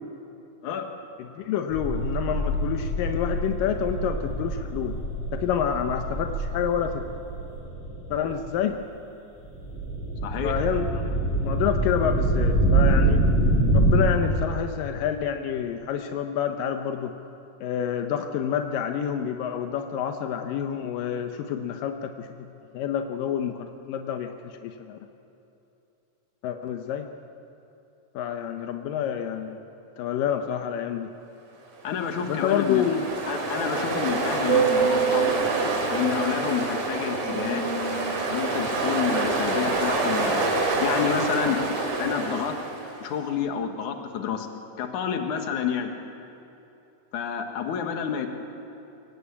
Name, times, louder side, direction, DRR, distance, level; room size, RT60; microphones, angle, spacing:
voice 1, 1.4-4.9 5.3-7.0 8.1-8.8 10.4-11.1 11.4-13.2 13.7-17.1 17.6-22.5 22.7-25.0 26.4-27.1 28.1-29.6 30.0-31.1 32.2-33.1, left 8 dB, 85° left, 6 dB, 2.6 m, -28 dB
sound 1, 1.7-8.4 9.5-13.9, right 1 dB, 10° left, 6.3 m, -25 dB
voice 2, 10.2-10.6 31.8-32.9 33.3-35.4 35.9-37.6 38.3-40.5 40.8-41.6 42.0-42.6 43.0-44.5 44.8-45.9 47.1-48.3, left 8 dB, 65° left, 5 dB, 2.9 m, -29 dB
Ocean, 31.9-43.0, right 3 dB, 60° right, 4.0 m, -26 dB
23.5 x 18.5 x 8.4 m, 2.9 s
omnidirectional pair, 3.8 m